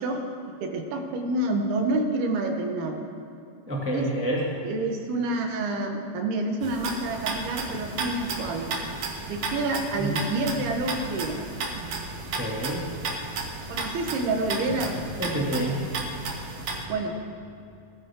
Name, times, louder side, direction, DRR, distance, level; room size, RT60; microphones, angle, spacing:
voice 1, 0.0-3.0 3.9-4.1 4.6-8.7 9.3-11.5 13.7-15.0 16.9-17.2, right 2 dB, 75° right, 3 dB, 3.2 m, -28 dB
voice 2, 3.7-4.5 10.0-10.2 12.3-12.8 15.2-15.8, right 1 dB, 5° right, -4 dB, 1.2 m, -28 dB
sound 1, 6.6-16.9, right 3 dB, 55° right, 2.4 m, -33 dB
21.5 x 14.0 x 3.8 m, 2.6 s
omnidirectional pair, 4.7 m